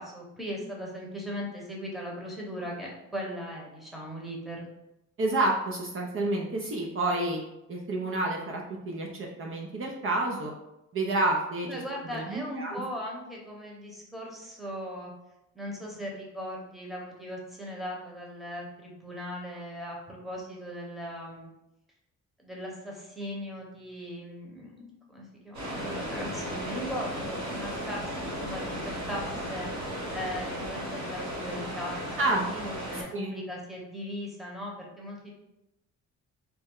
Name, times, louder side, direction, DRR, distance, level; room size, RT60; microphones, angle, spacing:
voice 1, 0.0-4.7 11.6-15.1 15.5-21.5 22.4-28.8 29.1-35.3, equal, ahead, -2 dB, 1.0 m, -39 dB
voice 2, 5.2-7.4 7.7-10.5 10.9-11.7 12.1-12.8 32.2-32.5 33.1-33.3, right 2 dB, 45° right, -1 dB, 0.6 m, -29 dB
sound 1, 25.5-33.0, equal, 70° right, 1.5 m, -35 dB
4.1 x 2.2 x 3.7 m, 0.90 s
cardioid pair, 110°, 29 cm